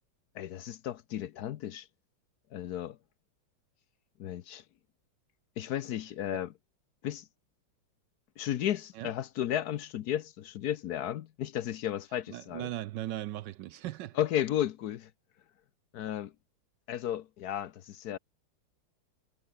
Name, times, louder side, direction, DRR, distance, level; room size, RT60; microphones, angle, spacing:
voice 1, 0.3-1.9 2.5-3.0 4.2-4.6 5.6-6.5 7.0-7.3 8.4-12.7 14.1-15.1 15.9-16.3 16.9-18.2, left 11 dB, 70° left, 0.9 m, -34 dB
voice 2, 12.3-14.2, right 15 dB, 75° right, 1.0 m, -38 dB
omnidirectional pair, 2.4 m